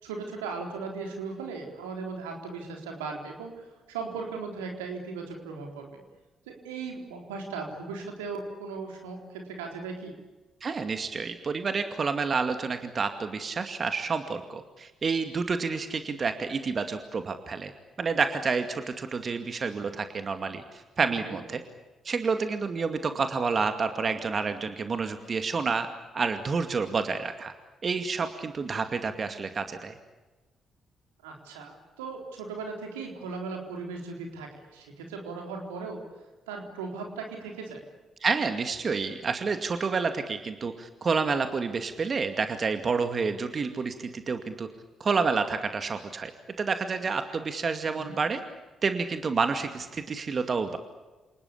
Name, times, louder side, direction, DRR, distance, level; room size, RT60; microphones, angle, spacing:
voice 1, 0.0-6.0 6.5-10.2 21.3-21.4 31.2-36.0 36.5-37.8 47.8-48.2, right 4 dB, 90° right, 2 dB, 4.0 m, -37 dB
voice 2, 10.6-17.7 18.0-21.6 22.0-25.9 26.1-27.5 27.8-29.9 38.2-44.7 45.0-46.3 46.6-48.4 48.8-50.8, right 5 dB, 45° right, 8 dB, 2.3 m, -29 dB
28.5 x 19.5 x 8.6 m, 1.2 s
hypercardioid pair, 45°, 0 cm